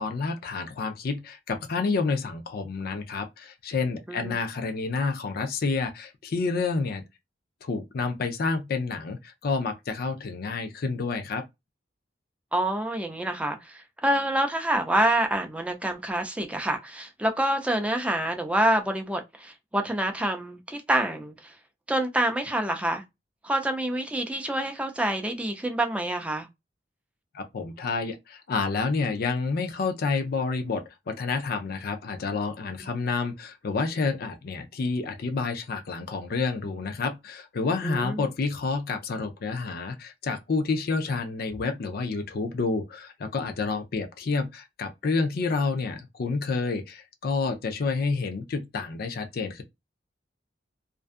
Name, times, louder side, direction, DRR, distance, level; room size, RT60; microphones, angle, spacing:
voice 1, 0.0-7.0 7.6-11.4 27.3-49.6, left 4 dB, 55° left, 0.4 m, -29 dB
voice 2, 12.5-21.5 21.9-23.0 23.4-26.5 32.8-32.9 37.8-38.3, right 1 dB, 5° right, 0.4 m, -27 dB
2.5 x 2.2 x 2.4 m
head